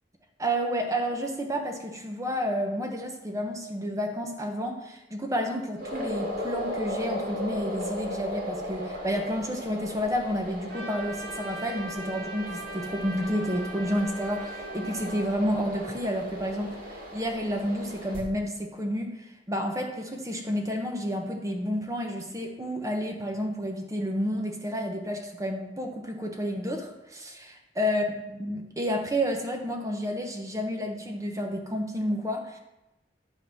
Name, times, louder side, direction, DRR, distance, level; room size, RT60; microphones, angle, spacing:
voice 1, 0.4-32.6, equal, 20° right, 3 dB, 1.0 m, -30 dB
sound 1, 5.8-18.2, equal, 55° right, 2.5 m, -37 dB
Trumpet, 10.7-15.4, right 2 dB, 90° right, 2.9 m, -40 dB
11.0 x 4.0 x 6.3 m, 0.96 s
head